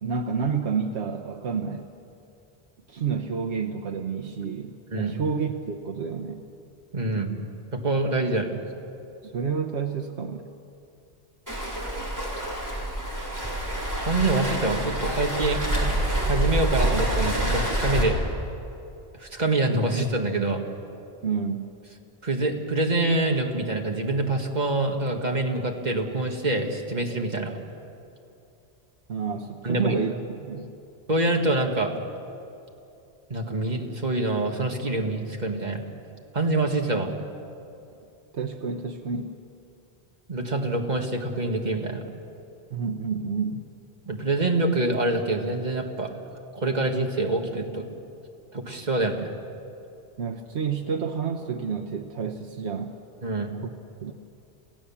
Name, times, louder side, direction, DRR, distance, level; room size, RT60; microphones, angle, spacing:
voice 1, 0.0-1.8 2.9-6.4 9.2-10.5 21.2-21.7 29.1-30.7 38.3-39.3 42.7-43.6 50.2-52.9 53.6-53.7 54.0-54.1, right 6 dB, 85° right, 3 dB, 1.2 m, -29 dB
voice 2, 6.9-7.3 7.7-8.5 14.0-15.9 16.2-18.2 19.2-20.6 22.2-27.5 29.6-29.9 31.1-31.9 33.3-35.9 36.3-37.1 40.3-42.0 44.1-46.1 46.5-47.8 48.5-49.3 53.2-53.5, right 2 dB, 40° right, 2 dB, 2.0 m, -25 dB
Waves surf, 11.5-18.0, right 1 dB, 15° right, 4.5 m, -27 dB
28.5 x 15.5 x 7.2 m, 2.7 s
omnidirectional pair, 1.1 m